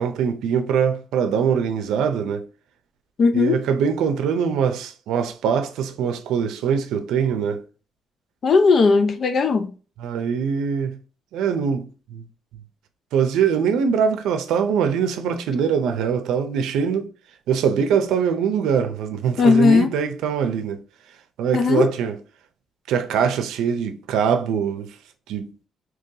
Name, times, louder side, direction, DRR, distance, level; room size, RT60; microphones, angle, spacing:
voice 1, 0.0-2.5 3.3-7.6 10.0-11.0 11.3-12.2 13.1-17.1 17.5-20.8 21.4-22.1 22.9-24.9 25.3-25.5, right 7 dB, 90° right, 0.5 m, -22 dB
voice 2, 3.2-3.6 8.4-9.7 19.4-19.9 21.5-21.9, left 4 dB, 50° left, 0.6 m, -17 dB
3.7 x 2.9 x 2.7 m
cardioid pair, 90°, 0 cm